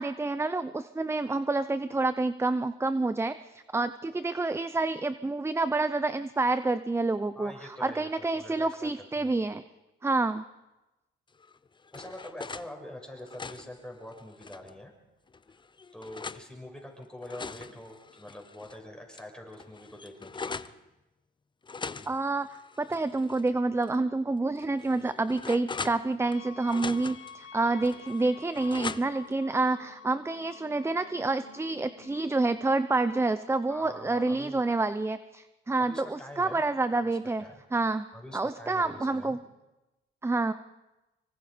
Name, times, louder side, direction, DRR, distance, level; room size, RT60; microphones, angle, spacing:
voice 1, 0.0-9.6 10.0-10.4 22.1-37.4 37.7-38.0 38.3-39.4 40.2-40.5, right 3 dB, 15° right, 13 dB, 0.7 m, -28 dB
voice 2, 7.4-9.3 11.9-14.9 15.9-20.6 33.7-34.6 35.9-36.6 36.9-37.0 37.4-37.6 38.1-39.4, left 1 dB, 5° left, 1 dB, 6.3 m, -45 dB
sound 1, 11.4-12.7 13.1-14.8 15.3-16.5 17.0-18.8 19.1-19.2 19.5-20.8 21.6-23.5 23.8-23.9 24.6-26.4 26.7-27.3 27.8-29.3, left 4 dB, 25° left, 0.7 m, -41 dB
sound 2, 26.2-32.6, left 6 dB, 80° left, 1.8 m, -50 dB
25.0 x 23.5 x 5.1 m, 1.0 s
cardioid pair, 90°, 20 cm